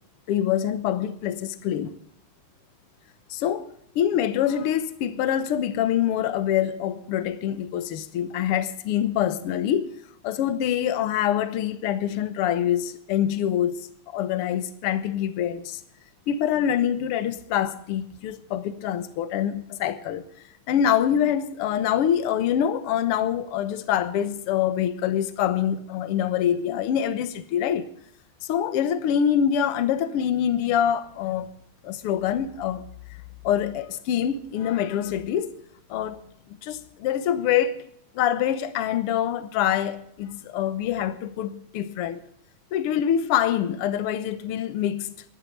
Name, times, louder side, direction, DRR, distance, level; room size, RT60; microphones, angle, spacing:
voice 1, 0.3-1.9 3.3-3.7 4.0-9.9 10.2-13.8 14.1-15.8 16.3-20.3 20.7-27.9 28.4-31.5 31.8-32.8 33.4-35.5 35.9-36.2 36.6-37.8 38.2-42.2 42.7-45.2, left 10 dB, 60° left, 1.7 m, -25 dB
14.0 x 11.0 x 6.6 m
omnidirectional pair, 3.4 m